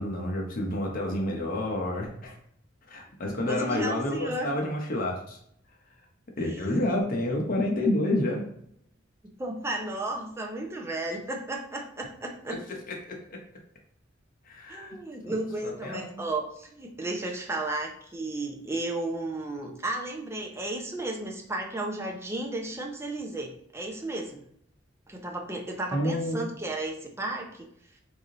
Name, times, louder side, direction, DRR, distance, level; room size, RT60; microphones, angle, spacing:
voice 1, 0.0-2.4 2.9-5.4 6.4-8.4 13.1-13.4 14.4-15.0 15.2-15.4 15.6-16.2 25.9-26.4, left 1 dB, 50° left, 0 dB, 0.8 m, -29 dB
voice 2, 3.5-4.5 6.4-7.0 9.2-12.6 14.7-24.4 25.1-27.7, right 2 dB, 15° right, 1 dB, 0.6 m, -34 dB
3.4 x 2.7 x 3.8 m, 0.70 s
head